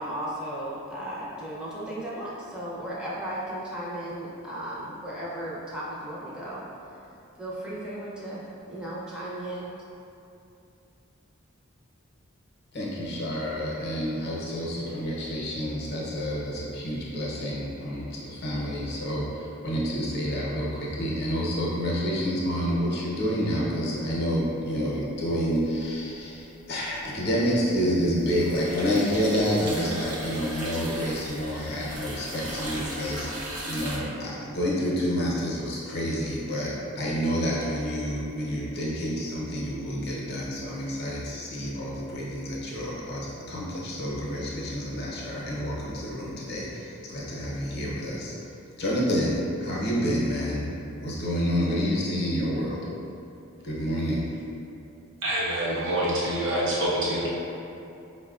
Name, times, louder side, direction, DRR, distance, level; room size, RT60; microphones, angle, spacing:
voice 1, 0.0-6.7 7.4-9.7, right 1 dB, 5° right, -8 dB, 0.5 m, -35 dB
voice 2, 12.7-48.4 48.8-50.7 51.0-52.8 53.6-54.3, equal, 50° left, -5 dB, 0.7 m, -29 dB
sound 1, 25.8-26.4 26.8-34.0, right 1 dB, 90° right, 0.7 m, -37 dB
voice 3, 55.2-57.3, right 1 dB, 60° right, -7 dB, 0.8 m, -26 dB
5.2 x 2.1 x 2.4 m, 2.7 s
head